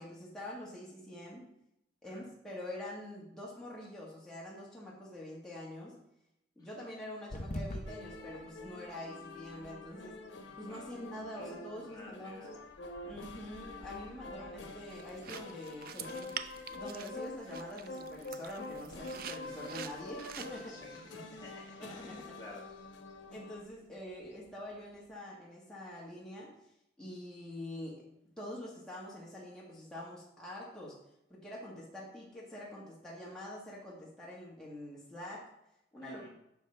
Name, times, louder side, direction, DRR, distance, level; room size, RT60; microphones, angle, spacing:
voice 1, 0.0-1.4 2.0-5.9 6.6-10.2 10.6-12.5 13.0-16.3 16.7-20.8 21.8-22.2 23.3-26.5 27.0-28.0 28.4-30.9 31.3-35.4 35.9-36.3, left 1 dB, 5° left, -6 dB, 1.5 m, -45 dB
sound 1, 7.3-25.2, left 1 dB, 40° left, 0.8 m, -52 dB
sound 2, 7.9-23.6, left 2 dB, 80° left, 0.9 m, -47 dB
voice 2, 11.9-12.5 20.7-21.1 21.4-22.6 36.0-36.3, left 2 dB, 20° left, -4 dB, 1.7 m, -52 dB
sound 3, 14.9-20.7, right 9 dB, 50° right, 0.4 m, -47 dB
9.2 x 5.6 x 3.3 m, 0.82 s
head